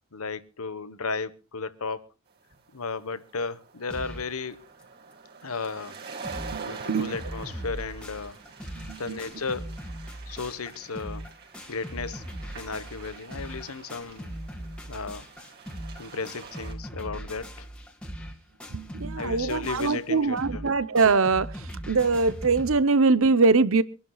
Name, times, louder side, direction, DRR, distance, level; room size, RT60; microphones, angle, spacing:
voice 1, 0.1-2.1 2.7-4.7 5.4-6.0 6.6-8.4 9.0-9.7 10.3-11.3 11.7-12.2 12.5-14.3 14.9-15.3 16.0-17.7 19.2-20.6, left 4 dB, 90° left, 1.3 m, -34 dB
sound 1, 2.5-16.7, right 5 dB, 50° right, 4.5 m, -45 dB
sound 2, 3.9-4.4 4.8-4.9 5.1-5.2 5.7-5.8 6.0-6.6 6.9-22.7, equal, 5° left, 2.2 m, -40 dB
voice 2, 6.5-7.2 8.9-9.2 18.7-23.8, right 4 dB, 65° right, 0.8 m, -23 dB
25.5 x 12.0 x 2.4 m
head